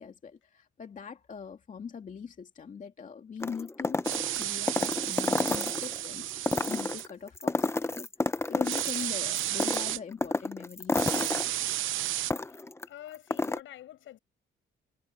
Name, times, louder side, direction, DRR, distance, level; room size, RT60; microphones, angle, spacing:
voice 1, 0.0-11.4, left 6 dB, 40° left, 2.4 m, -42 dB
sound 1, 3.4-6.0 6.4-9.1 9.4-12.8 13.1-13.6, left 2 dB, 15° left, 0.9 m, -30 dB
sound 2, 4.0-7.1 8.6-10.0 10.9-12.3, right 14 dB, 85° right, 0.9 m, -32 dB
voice 2, 12.5-14.2, left 13 dB, 80° left, 7.7 m, -48 dB
cardioid pair, 105°, 20 cm